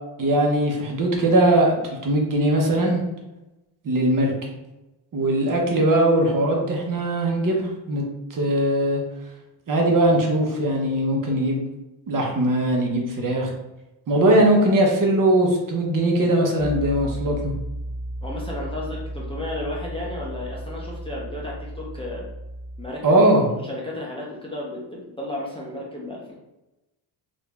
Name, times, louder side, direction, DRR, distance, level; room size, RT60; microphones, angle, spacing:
voice 1, 0.2-3.0 3.8-4.5 5.1-8.0 8.3-9.0 9.7-11.6 12.1-13.5 14.1-17.5 23.0-23.5, right 1 dB, 45° right, 0 dB, 0.8 m, -20 dB
Piano, 16.6-22.9, right 1 dB, 15° right, 1.1 m, -34 dB
voice 2, 18.2-22.3 22.8-23.2 23.6-26.3, left 1 dB, 10° left, -5 dB, 0.5 m, -33 dB
3.0 x 2.6 x 3.3 m, 0.99 s
cardioid pair, 140°, 47 cm